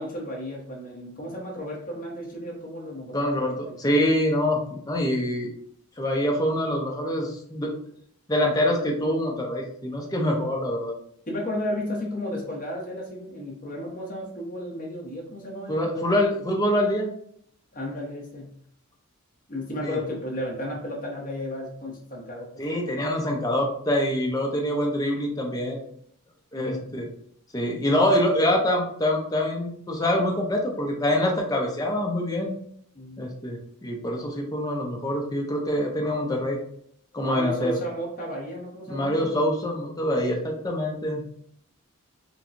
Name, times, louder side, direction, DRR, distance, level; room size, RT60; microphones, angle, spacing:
voice 1, 0.0-3.8 11.3-16.2 17.7-18.5 19.5-22.5 26.5-26.8 32.9-33.2 37.2-39.2, left 1 dB, 35° left, -2 dB, 1.2 m, -33 dB
voice 2, 3.1-5.5 6.0-7.7 8.3-10.9 15.7-17.1 19.8-20.0 22.6-25.8 26.5-27.1 27.5-32.6 33.2-36.6 37.1-37.8 38.9-41.2, left 1 dB, 15° left, 0 dB, 0.7 m, -25 dB
5.8 x 2.3 x 2.6 m, 0.65 s
head